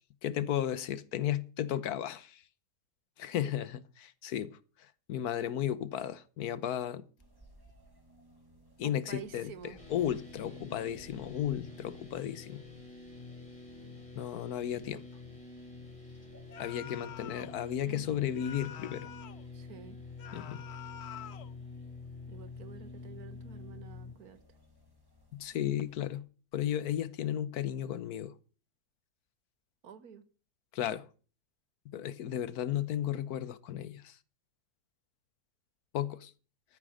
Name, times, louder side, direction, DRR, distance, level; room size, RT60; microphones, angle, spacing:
voice 1, 0.2-2.4 3.2-4.6 5.1-7.0 8.8-9.5 9.9-12.6 14.1-15.0 16.6-19.1 20.3-20.6 25.3-26.3 26.5-28.3 30.7-31.1 31.9-34.2 35.9-36.3, left 10 dB, 85° left, 1.4 m, -34 dB
sound 1, 7.2-26.2, equal, 15° right, 4.3 m, -62 dB
voice 2, 8.8-9.8 10.4-10.6 17.9-18.3 19.5-20.0 22.3-24.4 29.8-30.2, right 7 dB, 75° right, 1.8 m, -49 dB
sound 2, 9.8-24.1, left 3 dB, 20° left, 4.2 m, -47 dB
sound 3, 16.5-17.6 18.3-19.5 20.2-21.5, left 9 dB, 55° left, 0.9 m, -47 dB
13.5 x 8.9 x 6.3 m
omnidirectional pair, 1.6 m